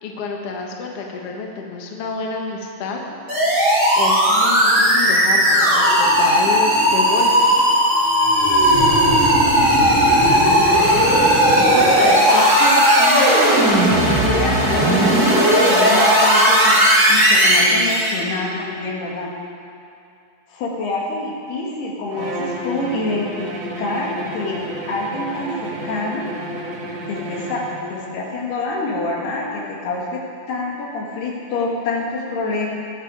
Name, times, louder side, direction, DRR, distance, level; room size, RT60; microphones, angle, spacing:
voice 1, 0.0-3.0 3.9-7.6 8.0-8.1, left 4 dB, 85° left, 1 dB, 1.3 m, -29 dB
sound 1, 3.3-18.2, equal, 15° right, 4.6 m, -15 dB
voice 2, 11.6-13.3 14.1-16.8 17.1-19.3 20.5-26.3 27.1-27.6 27.9-30.2 30.5-32.7, left 2 dB, 65° left, -2 dB, 3.9 m, -26 dB
Bowed string instrument, 22.1-27.9, right 1 dB, 65° right, 1.6 m, -31 dB
18.0 x 12.5 x 4.9 m, 2.5 s
omnidirectional pair, 5.2 m